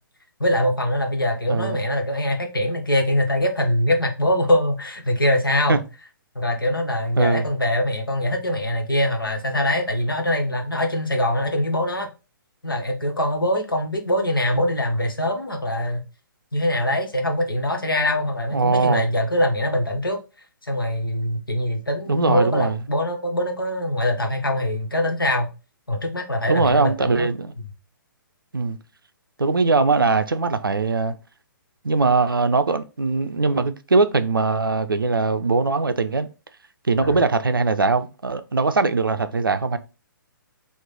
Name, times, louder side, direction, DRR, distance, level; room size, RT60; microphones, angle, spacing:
voice 1, 0.4-5.8 6.3-12.1 12.6-16.0 16.5-20.2 20.6-25.5 25.9-27.3 37.0-37.2, left 1 dB, 80° left, 0.8 m, -23 dB
voice 2, 1.5-1.8 5.7-5.8 7.2-7.5 18.5-19.0 22.1-22.8 26.5-27.5 28.5-28.8 29.4-31.1 31.8-36.3 36.9-39.8, right 3 dB, 80° right, 0.4 m, -21 dB
3.0 x 2.1 x 3.8 m
figure-of-eight pair, 125°, 11 cm